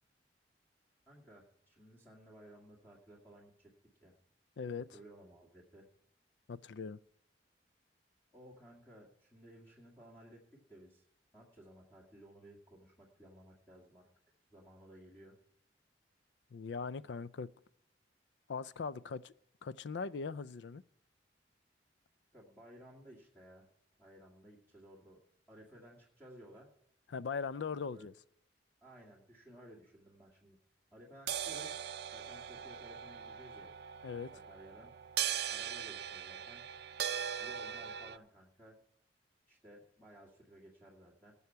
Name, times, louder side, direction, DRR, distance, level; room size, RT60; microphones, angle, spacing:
voice 1, 1.1-3.7 4.0-4.1 4.9-5.9 8.3-11.1 11.3-14.1 14.5-15.4 22.3-23.7 24.0-25.2 25.5-26.7 27.9-28.1 28.8-30.6 30.9-31.8 32.1-33.7 34.3-34.9 35.5-36.6 37.4-38.8 39.5-41.3, equal, 10° left, 2.2 m, -57 dB
voice 2, 4.6-4.9 6.5-7.0 16.5-17.5 18.5-19.3 19.6-20.8 27.1-28.1 34.0-34.3, left 5 dB, 75° left, 0.4 m, -40 dB
sound 1, 31.3-38.2, right 9 dB, 60° right, 0.5 m, -40 dB
19.5 x 7.1 x 4.6 m
head